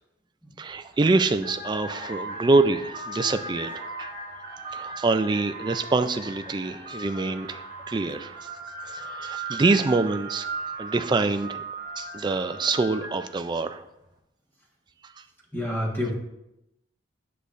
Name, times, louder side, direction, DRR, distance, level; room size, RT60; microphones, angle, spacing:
voice 1, 0.6-4.1 4.7-8.4 8.8-10.5 10.8-11.6 12.0-13.8, right 3 dB, 25° right, 9 dB, 0.3 m, -25 dB
sound 1, 0.7-0.9 1.3-13.4, right 2 dB, 45° right, 1.3 m, -38 dB
voice 2, 15.5-16.1, left 1 dB, 10° left, -3 dB, 1.4 m, -27 dB
8.2 x 6.8 x 2.5 m, 0.87 s
head